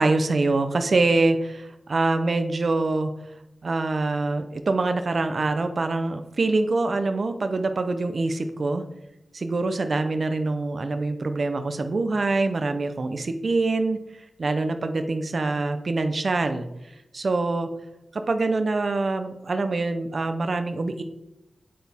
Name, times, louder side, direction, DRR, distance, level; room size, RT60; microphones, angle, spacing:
voice 1, 0.0-3.1 3.6-8.8 9.3-14.0 14.4-16.7 17.1-17.7 18.1-21.0, right 3 dB, 45° right, 8 dB, 0.7 m, -24 dB
8.6 x 8.3 x 3.6 m, 0.91 s
wide cardioid pair, 150°, 0 cm